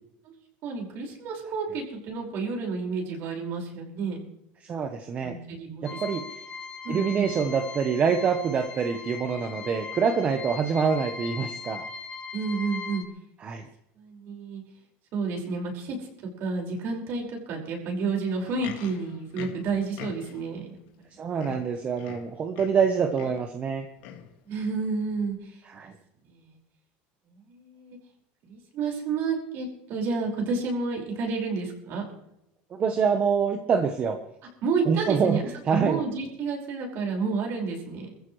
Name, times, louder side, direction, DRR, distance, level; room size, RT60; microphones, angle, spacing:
voice 1, 0.6-4.2 5.2-6.0 6.8-7.3 12.3-13.0 14.0-14.6 15.1-20.8 24.5-25.4 26.3-26.6 27.3-28.0 28.4-32.0 34.6-35.4 35.7-38.1, right 4 dB, 50° right, 0 dB, 5.3 m, -30 dB
voice 2, 4.6-5.3 5.8-6.2 6.9-11.8 13.4-13.7 21.2-23.9 25.7-25.9 32.7-34.2 34.9-35.4 35.7-36.0, right 6 dB, 30° right, 6 dB, 1.1 m, -25 dB
sound 1, 5.8-13.0, left 5 dB, 20° left, 1.1 m, -39 dB
Livestock farm animals working animals, 18.3-20.5 21.1-21.2 21.4-22.9 23.1-23.5 24.0-24.3 25.0-25.1, left 9 dB, 85° left, 2.2 m, -43 dB
22.5 x 15.0 x 3.3 m, 0.83 s
cardioid pair, 145°, 5 cm